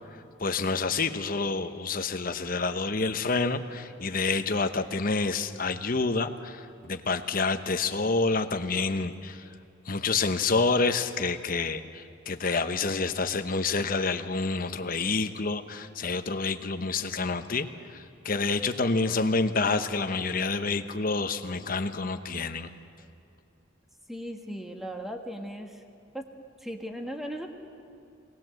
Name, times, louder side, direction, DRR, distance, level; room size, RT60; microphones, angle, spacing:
voice 1, 0.4-9.4 9.9-22.7, left 3 dB, 45° left, 8 dB, 1.0 m, -28 dB
voice 2, 24.1-25.8 26.1-26.3 26.6-27.5, equal, ahead, 3 dB, 1.5 m, -37 dB
22.5 x 19.0 x 7.7 m, 2.6 s
head